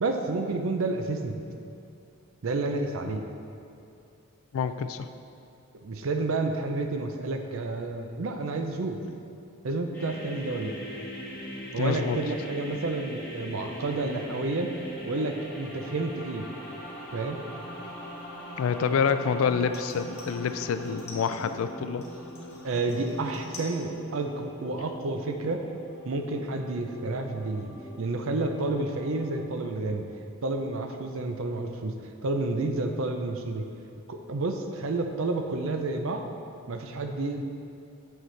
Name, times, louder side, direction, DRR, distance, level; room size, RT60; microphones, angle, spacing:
voice 1, 0.0-1.4 2.4-3.3 5.7-9.0 9.6-10.7 11.7-14.8 15.1-16.5 17.1-17.4 22.6-25.6 26.0-27.7 28.0-30.1 30.4-31.9 32.2-33.7 34.1-36.2 36.7-37.4, right 2 dB, 65° right, 5 dB, 0.5 m, -30 dB
voice 2, 4.5-5.1 11.8-12.2 18.6-22.0, left 6 dB, 65° left, 10 dB, 0.3 m, -27 dB
sound 1, 9.9-29.5, equal, 10° left, 1.5 m, -41 dB
sound 2, 19.7-21.6 22.0-23.8 24.1-24.7 25.0-25.1, left 3 dB, 30° left, 1.1 m, -48 dB
7.1 x 6.4 x 3.2 m, 2.6 s
head